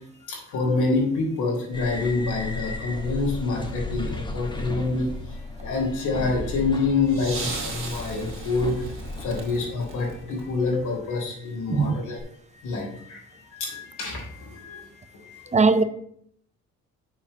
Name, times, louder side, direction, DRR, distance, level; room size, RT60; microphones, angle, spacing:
voice 1, 0.2-8.9 9.2-12.2 12.5-15.8, left 3 dB, 80° left, 3.6 m, -27 dB
sound 1, 1.7-9.5, left 1 dB, 15° left, 1.4 m, -34 dB
sound 2, 6.8-11.0 12.2-12.3, right 3 dB, 40° right, 2.6 m, -37 dB
voice 2, 15.5-15.8, right 4 dB, 25° right, 0.6 m, -19 dB
7.1 x 4.8 x 6.3 m
cardioid pair, 90°, 30 cm